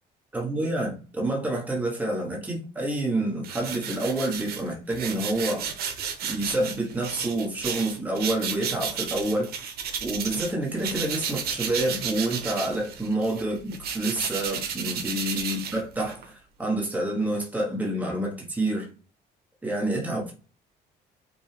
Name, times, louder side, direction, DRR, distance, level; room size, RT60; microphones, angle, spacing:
voice 1, 0.3-5.7 6.3-9.6 10.0-18.9 19.6-20.3, right 1 dB, 10° right, 1.2 m, -28 dB
sound 1, 3.4-10.5 10.8-16.2, right 7 dB, 65° right, 0.8 m, -33 dB
5.2 x 2.4 x 3.3 m
cardioid pair, 110°, 17 cm